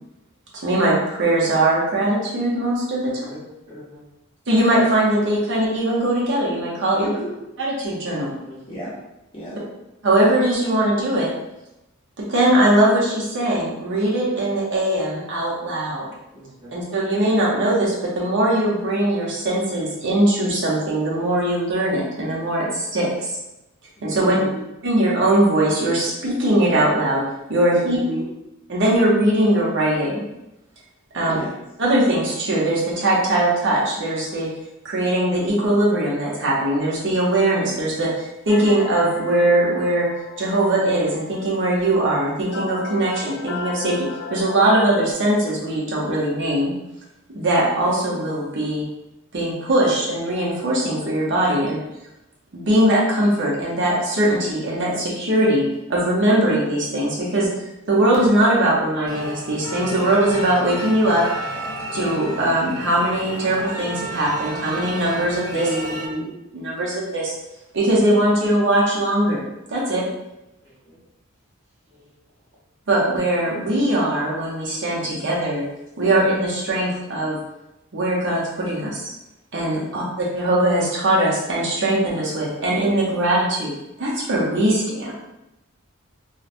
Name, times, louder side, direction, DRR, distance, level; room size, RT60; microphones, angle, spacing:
voice 1, 0.6-3.2 4.5-7.1 7.6-8.3 10.0-11.3 12.3-16.1 16.7-23.1 24.0-24.4 24.8-27.2 27.5-28.0 28.7-30.2 31.1-31.4 31.8-34.5 34.8-40.1 40.4-46.7 47.3-48.9 49.3-51.8 52.5-55.6 55.9-57.5 57.9-61.3 61.9-65.7 66.5-67.3 67.7-69.4 69.7-70.1 72.9-75.6 76.0-77.4 77.9-79.1 79.5-80.0 80.4-83.7 84.0-85.1, right 1 dB, 60° right, -4 dB, 0.8 m, -20 dB
voice 2, 3.0-4.0 8.4-8.8 16.3-16.7 70.6-71.0 71.9-72.1, equal, 35° right, -11 dB, 1.3 m, -44 dB
voice 3, 7.0-7.3 8.7-8.9 9.3-9.6 24.1-24.6 27.7-28.3 31.3-31.5 65.5-66.3 79.8-80.1, equal, 25° left, -8 dB, 0.6 m, -31 dB
sound 1, 38.5-45.1, left 4 dB, 60° left, 0.3 m, -36 dB
sound 2, 59.1-66.1, right 1 dB, 85° right, 0.8 m, -32 dB
3.1 x 2.1 x 2.5 m, 0.91 s
head